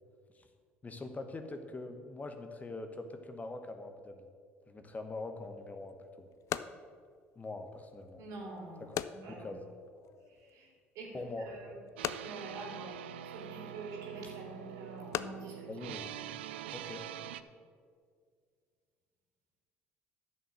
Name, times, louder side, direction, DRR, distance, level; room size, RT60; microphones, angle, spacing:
voice 1, 0.8-4.3 4.7-6.3 7.3-8.2 8.8-9.0 9.3-9.6 11.1-11.6 15.7-16.1 16.7-17.0, left 2 dB, 25° left, 6 dB, 1.1 m, -43 dB
sound 1, 5.4-16.8, left 11 dB, 55° left, 0.4 m, -44 dB
voice 2, 8.2-9.5 10.3-11.2 11.5-11.8 12.2-15.7, right 2 dB, 65° right, -1 dB, 2.9 m, -46 dB
sound 2, 12.0-17.4, right 10 dB, 80° right, 0.4 m, -44 dB
11.0 x 6.5 x 6.3 m, 2.1 s
hypercardioid pair, 60°, 6 cm